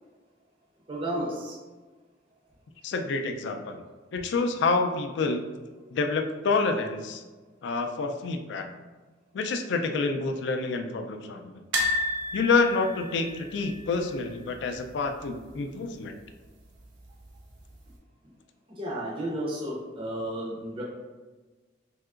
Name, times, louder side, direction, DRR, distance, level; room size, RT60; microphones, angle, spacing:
voice 1, 0.9-1.6 18.7-20.8, right 1 dB, 30° right, -4 dB, 0.5 m, -32 dB
voice 2, 2.8-3.8 4.1-5.4 5.9-7.2 7.6-8.7 9.3-11.6 12.3-16.1, left 4 dB, 65° left, 5 dB, 0.3 m, -28 dB
sound 1, 11.7-14.8 15.0-15.3 15.5-15.6 16.8-17.4 17.9-18.0, left 1 dB, 75° right, 0.6 m, -32 dB
3.4 x 2.8 x 2.4 m, 1.3 s
head